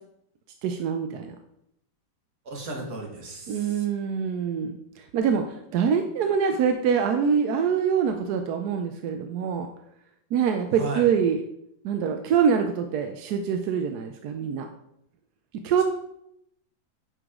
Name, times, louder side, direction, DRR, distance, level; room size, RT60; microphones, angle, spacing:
voice 1, 0.6-1.3 3.5-5.4 5.7-9.7 10.3-11.4 11.8-14.7 15.6-15.8, right 7 dB, 70° right, 6 dB, 1.0 m, -25 dB
voice 2, 2.5-3.8 10.7-11.1, right 2 dB, 55° right, 0 dB, 2.0 m, -35 dB
10.0 x 4.8 x 3.7 m, 0.77 s
omnidirectional pair, 2.1 m